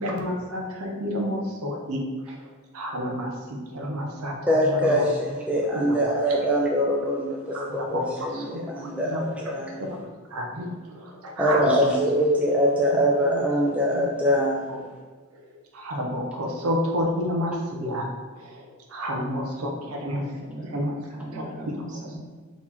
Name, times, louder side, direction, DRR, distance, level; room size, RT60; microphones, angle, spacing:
voice 1, 0.0-2.0 2.7-3.3 3.7-4.4 4.8-5.0 7.5-7.7 7.9-8.0 8.3-9.2 9.8-10.0 10.3-10.7 11.2-11.8 15.8-18.1 18.9-20.2 20.7-20.9, equal, 75° right, 0 dB, 0.6 m, -29 dB
voice 2, 4.5-9.8 11.4-14.6, equal, 5° right, -3 dB, 0.4 m, -23 dB
voice 3, 19.7-22.2, right 1 dB, 35° right, -6 dB, 1.4 m, -40 dB
4.0 x 3.0 x 4.2 m, 1.5 s
head